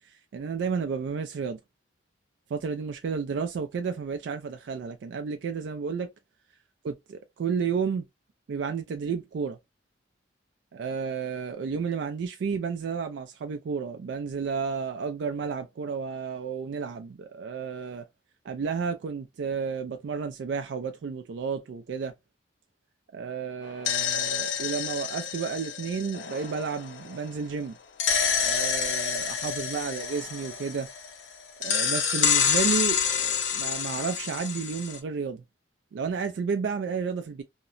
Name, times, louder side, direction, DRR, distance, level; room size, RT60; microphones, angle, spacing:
voice 1, 0.0-1.6 2.5-6.1 6.8-8.0 8.5-9.6 10.7-18.0 18.4-22.1 23.1-27.8 28.4-30.9 31.6-35.4 35.9-37.4, right 5 dB, 65° right, 0.3 m, -32 dB
sound 1, 23.6-27.3 28.0-31.2 31.6-35.0, left 7 dB, 70° left, 0.6 m, -28 dB
2.8 x 2.0 x 2.4 m
head